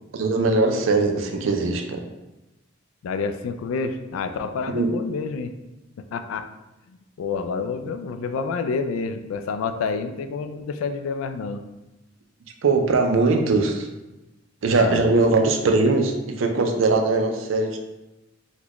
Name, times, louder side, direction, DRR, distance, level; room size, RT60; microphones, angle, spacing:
voice 1, 0.1-2.0 4.7-4.9 12.6-13.9 14.6-17.8, right 3 dB, 70° right, 4 dB, 0.4 m, -21 dB
voice 2, 3.0-5.5 6.1-6.5 6.9-11.6 14.8-15.1, left 4 dB, 85° left, 10 dB, 0.3 m, -28 dB
4.1 x 2.2 x 2.9 m, 1.0 s
head